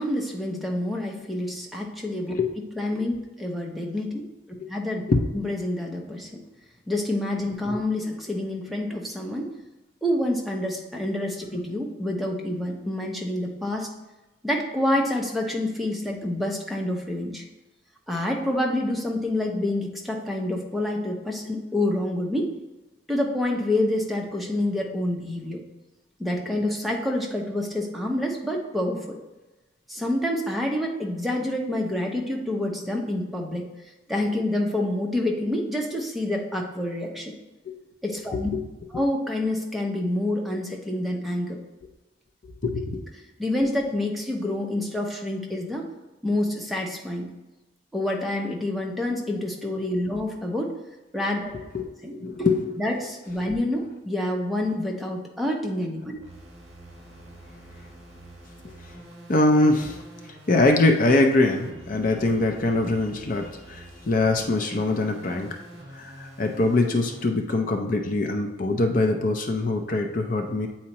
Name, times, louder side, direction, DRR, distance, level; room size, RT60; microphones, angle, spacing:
voice 1, 0.0-2.3 2.8-4.2 4.7-5.0 5.3-6.4 6.9-9.5 10.0-13.9 14.4-17.4 18.1-22.5 23.1-25.6 26.2-29.2 29.9-33.7 34.1-37.3 38.0-38.5 38.9-41.6 43.4-45.9 46.2-47.3 47.9-50.8 51.1-51.5 52.0-52.5 52.8-56.1, left 1 dB, ahead, -1 dB, 0.7 m, -27 dB
voice 2, 38.3-38.6 42.6-43.0 51.7-52.7 58.8-58.9 59.3-65.5 65.9-70.7, left 2 dB, 45° left, 4 dB, 0.5 m, -23 dB
sound 1, 56.2-67.3, right 1 dB, 35° right, 1.3 m, -46 dB
8.4 x 4.3 x 2.9 m, 1.1 s
head